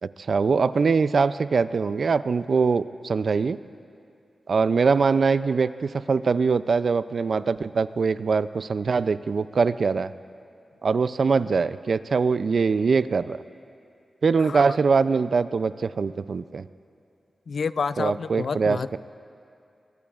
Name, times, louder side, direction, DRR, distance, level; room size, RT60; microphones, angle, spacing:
voice 1, 0.0-3.6 4.5-10.1 10.8-13.4 14.2-16.6 18.0-19.0, right 5 dB, 55° right, 14 dB, 0.3 m, -23 dB
voice 2, 17.5-19.0, left 5 dB, 60° left, 15 dB, 0.3 m, -29 dB
23.0 x 21.0 x 2.4 m, 2.5 s
wide cardioid pair, 135°, 0 cm